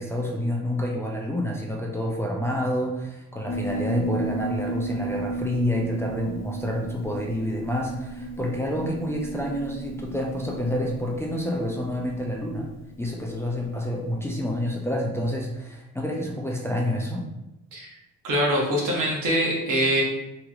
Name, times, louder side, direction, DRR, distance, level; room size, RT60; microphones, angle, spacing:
voice 1, 0.0-12.7 13.0-17.3, left 1 dB, 10° left, -1 dB, 0.4 m, -28 dB
Piano, 3.5-14.2, right 2 dB, 55° left, 0.6 m, -34 dB
voice 2, 18.2-20.0, equal, 70° right, -2 dB, 1.1 m, -23 dB
2.9 x 2.9 x 2.4 m, 0.92 s
cardioid pair, 85°, 32 cm